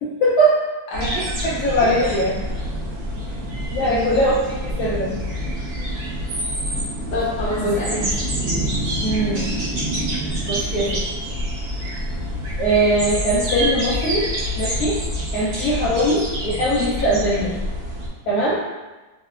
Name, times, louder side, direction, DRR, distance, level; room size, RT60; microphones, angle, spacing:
voice 1, 0.0-0.6 1.4-2.3 3.7-5.3 7.6-7.8 9.0-9.5 10.5-11.0 12.6-14.3 14.6-15.0 15.3-17.5 18.3-18.6, right 1 dB, 65° left, -8 dB, 1.0 m, -21 dB
voice 2, 0.9-1.3 2.0-2.1 3.8-4.3 7.1-8.1, left 1 dB, 40° left, -7 dB, 0.8 m, -27 dB
sound 1, 0.9-18.1, equal, 50° right, 1.0 m, -26 dB
3.9 x 2.3 x 2.4 m, 1.2 s
omnidirectional pair, 1.9 m